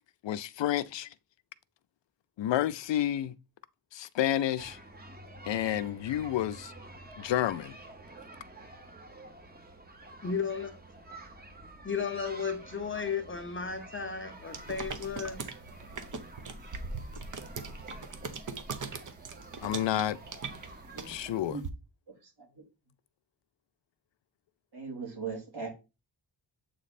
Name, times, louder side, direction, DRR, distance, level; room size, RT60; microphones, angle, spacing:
voice 1, 0.2-1.1 2.4-3.3 3.9-4.8 5.4-6.7 7.2-7.8 19.6-20.2 21.0-21.6, left 12 dB, 85° left, 0.5 m, -30 dB
sound 1, 4.6-21.4, right 2 dB, 20° right, 1.0 m, -49 dB
voice 2, 10.2-10.7 11.8-15.4, left 6 dB, 30° left, 0.7 m, -34 dB
sound 2, 14.5-21.7, right 4 dB, 45° right, 0.8 m, -41 dB
voice 3, 22.1-22.6 24.7-25.7, right 5 dB, 60° right, 3.1 m, -40 dB
7.8 x 3.1 x 4.1 m
wide cardioid pair, 150°, 43 cm